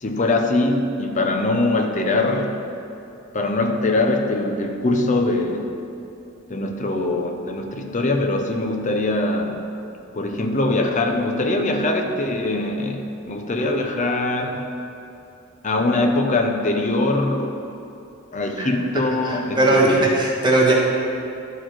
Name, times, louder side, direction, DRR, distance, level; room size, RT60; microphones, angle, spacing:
voice 1, 0.0-2.6 3.3-5.7 6.5-9.6 10.1-14.7 15.6-17.6 18.3-20.1, left 2 dB, 40° left, 3 dB, 0.7 m, -22 dB
voice 2, 19.3-20.7, right 2 dB, 25° right, -4 dB, 1.3 m, -18 dB
11.5 x 4.4 x 4.6 m, 2.7 s
head